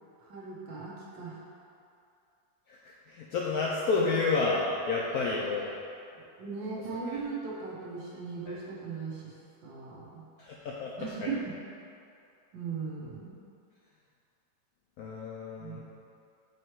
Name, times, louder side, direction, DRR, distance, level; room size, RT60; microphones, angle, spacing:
voice 1, 0.2-1.4 5.1-5.4 6.1-9.3 9.6-10.3 11.0-11.3 12.5-13.3 15.6-15.8, right 5 dB, 75° right, -4 dB, 1.7 m, -38 dB
voice 2, 3.1-5.7 7.1-7.2 8.5-8.6 10.4-11.3 15.0-15.8, left 4 dB, 75° left, -4 dB, 0.8 m, -30 dB
6.6 x 3.2 x 4.5 m, 2.5 s
omnidirectional pair, 2.1 m